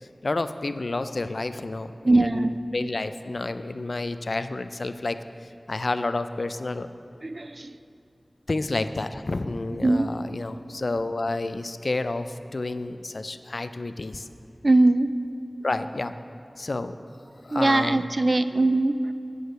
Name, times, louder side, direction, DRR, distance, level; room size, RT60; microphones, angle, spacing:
voice 1, 0.2-5.2 5.7-6.9 8.5-14.3 15.6-16.1 16.6-17.0 17.4-18.1 18.5-18.7, left 2 dB, 65° left, 11 dB, 0.4 m, -30 dB
voice 2, 2.0-2.5 7.2-7.8 9.8-10.1 14.6-15.1 17.5-19.1, right 2 dB, 50° right, 12 dB, 0.4 m, -21 dB
9.6 x 6.4 x 7.9 m, 2.6 s
wide cardioid pair, 45°, 0 cm